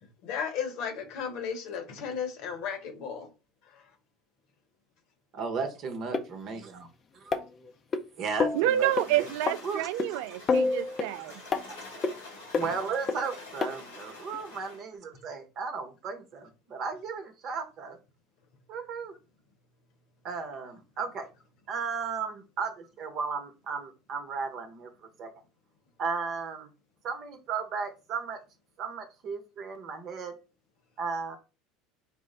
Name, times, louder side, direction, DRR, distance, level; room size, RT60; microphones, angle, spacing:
voice 1, 0.2-3.3 3.6-3.9, left 7 dB, 60° left, 1.1 m, -35 dB
voice 2, 5.3-6.9 7.3-7.4 8.2-8.9 9.2-9.3 9.6-10.4 11.3-11.4 11.7-11.8 12.5-18.0 18.7-19.1 20.2-21.3 21.7-24.9 25.2-25.3 26.0-26.7 27.0-28.4 28.8-30.3 31.0-31.4, right 5 dB, 50° right, 0.9 m, -35 dB
sound 1, 6.1-6.2 7.3-8.0 8.4-8.6 9.0-9.1 9.5-9.6 10.0-10.1 10.5-11.1 11.5-11.6 12.0-12.1 12.5-12.7 13.1-13.2 13.6-13.7 14.3-14.4, left 4 dB, 35° left, 0.6 m, -27 dB
sound 2, 8.4-14.9, left 2 dB, 85° left, 1.7 m, -47 dB
voice 3, 8.5-11.3, right 13 dB, 70° right, 0.3 m, -28 dB
4.3 x 2.1 x 3.8 m
hypercardioid pair, 80°, 0 cm